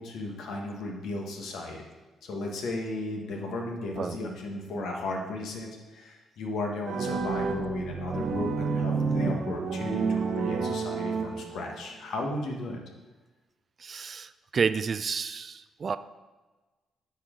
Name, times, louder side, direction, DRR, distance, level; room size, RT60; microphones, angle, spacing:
voice 1, 0.0-1.8 2.2-12.8, left 2 dB, 75° left, 1 dB, 1.3 m, -35 dB
sound 1, 6.8-11.8, right 4 dB, 60° right, 0.8 m, -30 dB
voice 2, 13.8-16.0, right 5 dB, 45° right, 13 dB, 0.3 m, -30 dB
9.7 x 4.6 x 3.7 m, 1.2 s
cardioid pair, 90°, 0 cm